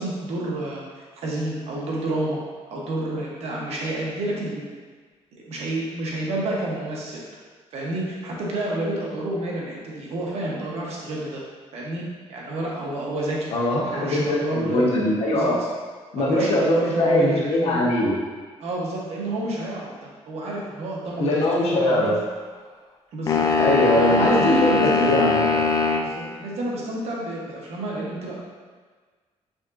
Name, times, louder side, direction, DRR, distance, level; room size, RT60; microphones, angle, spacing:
voice 1, 0.0-2.4 2.7-4.7 5.3-7.2 7.7-11.4 11.7-13.5 13.8-14.9 15.3-15.7 16.2-17.9 18.6-21.5 21.8-22.1 23.1-23.5 23.9-25.3 26.0-28.4, right 1 dB, 65° right, -3 dB, 1.0 m, -29 dB
voice 2, 13.5-15.5 16.1-18.1 21.2-22.1 23.6-24.7 25.0-25.4, left 1 dB, 60° left, -5 dB, 1.0 m, -21 dB
sound 1, 23.3-26.1, left 4 dB, 30° left, 0.3 m, -21 dB
5.1 x 3.6 x 2.5 m, 1.4 s
cardioid pair, 170°, 12 cm